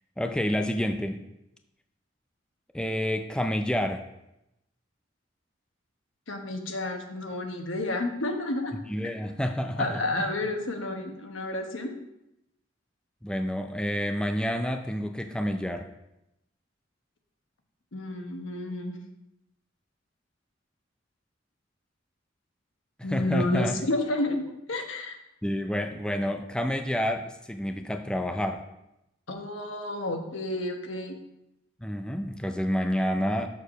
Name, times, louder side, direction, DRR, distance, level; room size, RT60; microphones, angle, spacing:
voice 1, 0.2-1.2 2.7-4.0 8.9-10.3 13.2-15.9 23.0-23.8 25.4-28.6 31.8-33.5, equal, 5° left, 5 dB, 0.4 m, -29 dB
voice 2, 6.3-8.8 9.8-11.9 17.9-19.0 23.0-25.1 29.3-31.2, left 2 dB, 90° left, 4 dB, 1.2 m, -30 dB
6.7 x 4.8 x 6.4 m, 0.87 s
head